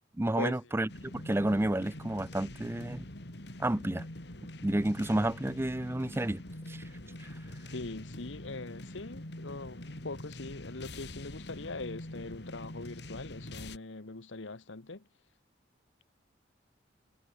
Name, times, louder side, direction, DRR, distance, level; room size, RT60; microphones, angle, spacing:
voice 1, 0.2-3.1 3.6-4.1 4.6-6.4 6.7-6.8 7.2-7.4, right 1 dB, 15° right, 0.5 m, -31 dB
sound 1, 0.9-13.8, left 1 dB, 60° left, 3.1 m, -45 dB
voice 2, 7.7-15.1, left 3 dB, 85° left, 1.3 m, -41 dB
head